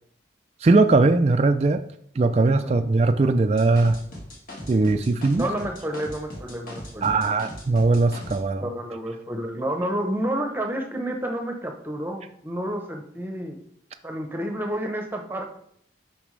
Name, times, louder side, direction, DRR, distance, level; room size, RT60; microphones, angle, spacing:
voice 1, 0.6-1.8 2.2-4.0 4.7-5.4 7.0-8.7, right 3 dB, 35° right, 7 dB, 0.3 m, -20 dB
sound 1, 3.6-8.4, left 1 dB, 45° left, 1.8 m, -39 dB
voice 2, 5.3-7.2 8.6-13.6 14.0-15.6, right 1 dB, 10° right, 3 dB, 0.8 m, -30 dB
8.6 x 5.9 x 3.2 m, 0.66 s
head